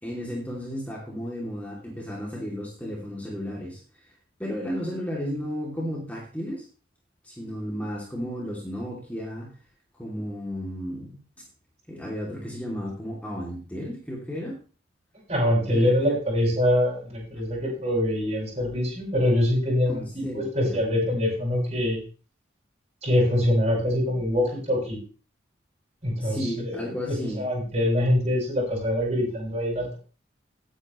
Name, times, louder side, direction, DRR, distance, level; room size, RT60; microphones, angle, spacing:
voice 1, 0.0-3.8 4.4-6.6 7.2-9.5 10.0-11.5 11.9-14.6 15.7-15.9 17.3-17.4 19.9-20.8 26.2-27.4, equal, 10° left, -3 dB, 2.8 m, -33 dB
voice 2, 15.3-22.0 23.0-25.0 26.0-26.8 27.1-30.0, left 1 dB, 35° right, -2 dB, 6.2 m, -24 dB
16.5 x 9.1 x 3.2 m, 0.36 s
head